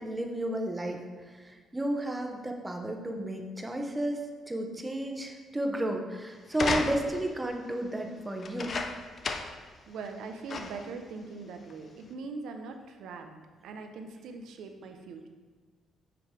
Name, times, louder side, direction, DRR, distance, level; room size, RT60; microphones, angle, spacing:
voice 1, 0.0-8.7, right 1 dB, 15° right, 3 dB, 0.9 m, -33 dB
sound 1, 6.5-7.3 8.4-9.7 10.0-10.1 10.5-10.9 11.7-11.8, left 4 dB, 45° left, 0.5 m, -33 dB
voice 2, 9.9-15.3, right 4 dB, 80° right, 5 dB, 0.7 m, -41 dB
7.8 x 3.3 x 4.8 m, 1.4 s
cardioid pair, 90°, 0 cm